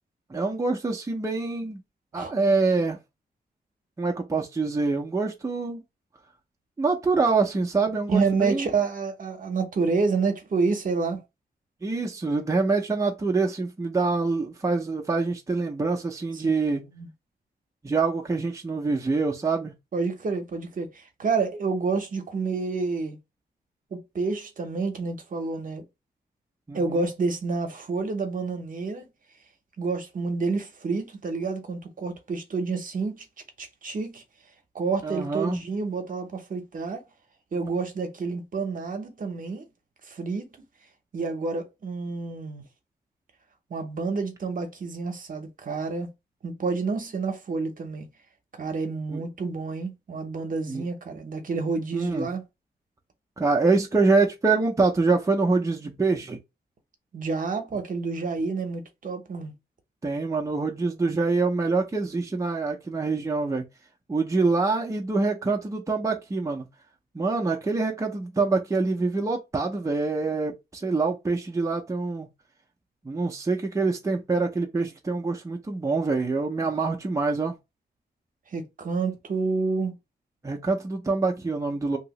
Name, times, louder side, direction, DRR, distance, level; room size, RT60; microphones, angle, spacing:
voice 1, 0.3-1.8 2.1-3.0 4.0-5.8 6.8-8.7 11.8-16.8 17.8-19.7 26.7-27.0 35.0-35.6 49.1-49.2 50.7-50.8 51.9-52.3 53.4-56.4 60.0-63.6 64.1-66.7 67.1-72.3 73.0-77.5 80.4-82.0, right 3 dB, 20° right, 0.6 m, -25 dB
voice 2, 8.1-11.2 16.3-16.4 16.9-17.1 19.9-23.2 23.9-25.8 26.7-29.1 29.8-33.2 33.6-34.2 34.7-37.0 37.5-39.7 40.1-40.5 41.1-42.6 43.7-46.1 46.4-48.1 48.6-52.4 57.1-59.5 78.5-80.0, right 4 dB, 50° right, 0.8 m, -29 dB
2.9 x 2.7 x 3.0 m
wide cardioid pair, 130°, 17 cm